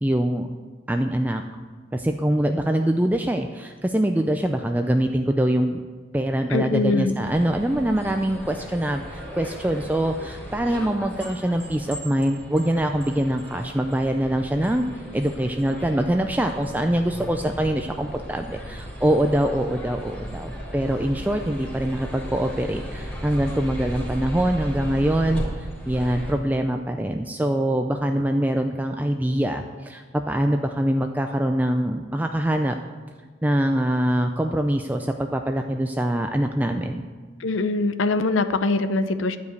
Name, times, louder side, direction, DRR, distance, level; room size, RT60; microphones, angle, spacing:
voice 1, 0.0-0.5 0.9-1.4 1.9-5.8 6.1-14.8 15.1-32.8 33.4-37.0, right 1 dB, 10° right, 5 dB, 0.3 m, -24 dB
voice 2, 6.5-7.2 37.4-39.4, left 2 dB, 75° left, 11 dB, 0.6 m, -23 dB
sound 1, 7.2-26.3, equal, 10° left, 2.6 m, -36 dB
12.0 x 5.0 x 8.2 m, 1.5 s
head